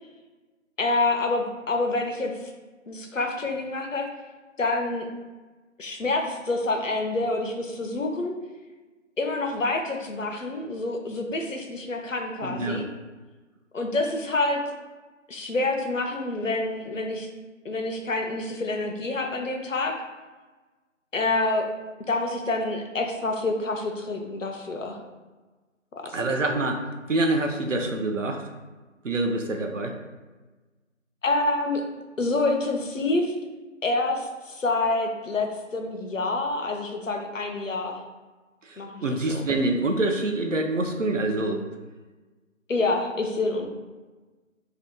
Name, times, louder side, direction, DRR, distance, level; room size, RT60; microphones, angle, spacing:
voice 1, 0.8-2.5 2.9-4.1 4.6-5.1 5.8-8.4 9.2-12.9 13.7-14.6 15.3-17.3 17.6-19.9 21.1-21.7 22.1-25.0 26.2-26.4 31.2-31.8 32.2-33.3 33.8-38.0 38.8-39.0 39.3-39.5 42.7-43.7, left 2 dB, 75° left, 3 dB, 0.6 m, -27 dB
voice 2, 12.4-12.8 26.1-28.4 29.0-29.9 38.6-41.6, right 2 dB, 70° right, 3 dB, 0.6 m, -26 dB
2.7 x 2.3 x 3.5 m, 1.3 s
figure-of-eight pair, 175°, 39 cm